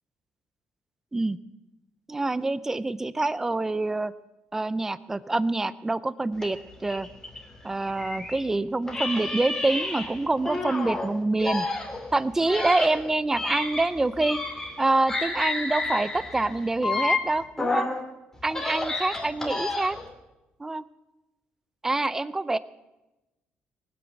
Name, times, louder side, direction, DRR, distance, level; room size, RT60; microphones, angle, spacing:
voice 1, 2.1-4.1 4.5-7.1 7.6-11.7 12.1-14.4 14.8-17.9 18.4-20.0 20.6-20.8 21.8-22.6, right 2 dB, 15° right, 16 dB, 0.5 m, -26 dB
sound 1, 6.4-8.5 8.9-11.1 11.4-14.8 15.1-18.0 18.4-20.1, left 2 dB, 15° left, 2.7 m, -30 dB
19.5 x 9.4 x 7.0 m, 1.0 s
cardioid pair, 145°, 3 cm